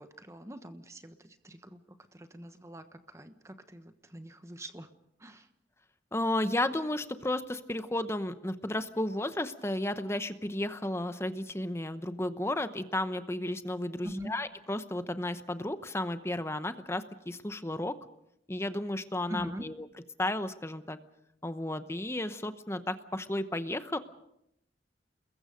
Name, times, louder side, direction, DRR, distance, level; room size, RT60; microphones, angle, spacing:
voice 1, 0.0-1.8 2.1-4.9 5.2-5.5 14.0-14.3 19.3-19.7, equal, 15° right, 10 dB, 1.2 m, -43 dB
voice 2, 6.1-18.0 18.5-19.9 20.2-21.0 21.4-24.0, left 1 dB, 15° left, 11 dB, 0.9 m, -33 dB
30.0 x 21.5 x 5.2 m, 0.79 s
head